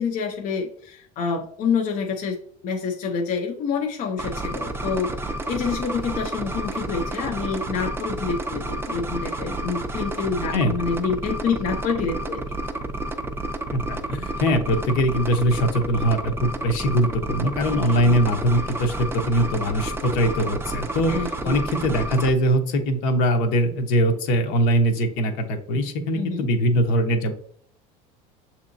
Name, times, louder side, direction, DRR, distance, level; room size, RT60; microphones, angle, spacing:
voice 1, 0.0-2.4 2.6-12.6 18.0-18.2 21.1-21.5 26.1-26.5, left 5 dB, 45° left, 3 dB, 0.6 m, -27 dB
sound 1, 4.2-22.3, right 2 dB, 15° right, 0.5 m, -30 dB
voice 2, 13.7-27.3, equal, 70° left, 4 dB, 0.9 m, -22 dB
6.5 x 2.9 x 2.6 m, 0.62 s
supercardioid pair, 110°, 19 cm